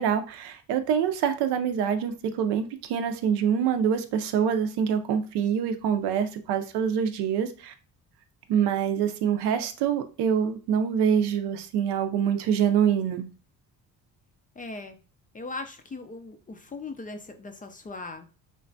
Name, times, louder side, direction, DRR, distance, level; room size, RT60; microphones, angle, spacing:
voice 1, 0.0-7.7 8.5-13.3, right 8 dB, 75° right, 0.6 m, -25 dB
voice 2, 14.6-15.0 15.3-18.3, left 3 dB, 20° left, 0.4 m, -39 dB
3.1 x 2.2 x 2.5 m
supercardioid pair, 70°, 40 cm